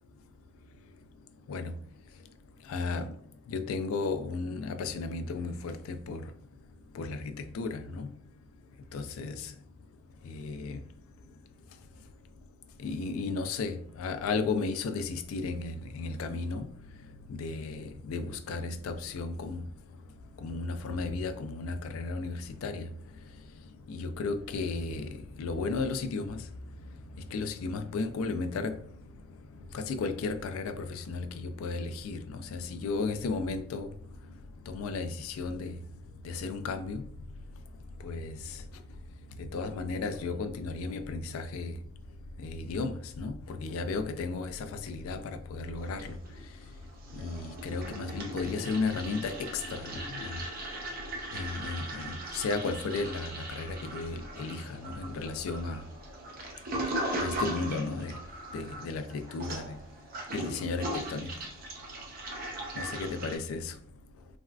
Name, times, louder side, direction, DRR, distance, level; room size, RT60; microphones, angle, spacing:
voice 1, 2.7-3.1 3.5-6.2 6.9-8.1 8.9-9.5 10.2-10.8 12.8-16.7 17.3-19.6 20.4-22.9 23.9-26.4 27.3-28.8 29.7-33.9 34.7-35.7 36.2-37.0 38.0-38.6 39.4-41.7 42.4-46.2 47.1-50.4 51.3-55.8 57.2-58.1 58.5-59.8 60.3-61.3 62.8-63.8, left 4 dB, 90° left, 0.3 m, -34 dB
Toilet flush, 45.8-46.6 46.9-63.4, right 1 dB, 45° right, 0.6 m, -39 dB
3.4 x 2.3 x 2.3 m
head